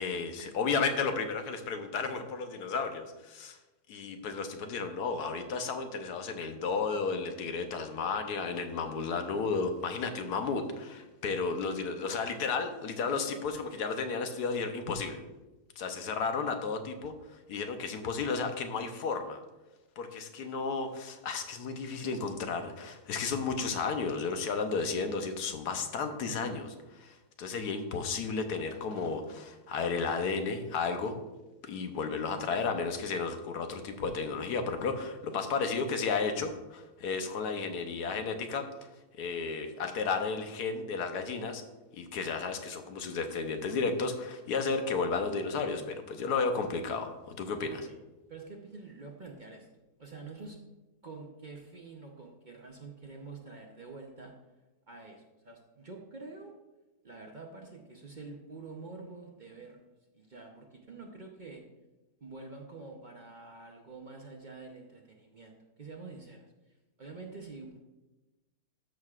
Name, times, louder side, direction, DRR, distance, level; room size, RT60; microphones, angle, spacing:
voice 1, 0.0-3.6 3.9-15.2 15.8-17.1 17.5-19.4 20.0-31.2 31.6-38.7 39.2-41.6 41.9-47.9, left 4 dB, 85° left, 6 dB, 1.3 m, -33 dB
voice 2, 48.3-49.7 50.0-50.6 51.0-54.3 54.9-56.5 57.0-59.8 60.1-61.6 62.2-66.5 67.0-67.8, right 3 dB, 40° right, 1 dB, 0.7 m, -47 dB
13.0 x 6.2 x 2.4 m, 1.1 s
omnidirectional pair, 1.6 m